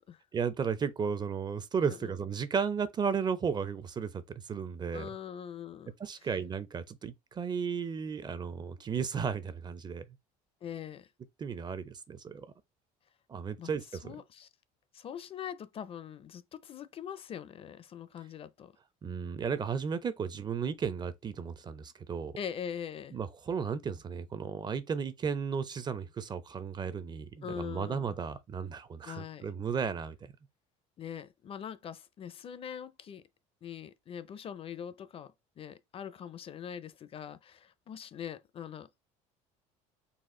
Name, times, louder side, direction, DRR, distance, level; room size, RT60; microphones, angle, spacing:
voice 1, 0.3-5.1 6.0-10.1 11.4-12.5 13.3-14.2 19.0-22.4 23.1-30.3, right 6 dB, 25° right, 0.5 m, -34 dB
voice 2, 4.9-5.9 10.6-11.1 13.6-13.7 14.0-14.5 14.9-18.7 22.4-23.2 27.4-28.2 29.0-29.5 31.0-33.2 33.6-39.1, left 8 dB, 35° left, 0.5 m, -42 dB
4.1 x 2.4 x 3.7 m
supercardioid pair, 105°, 16 cm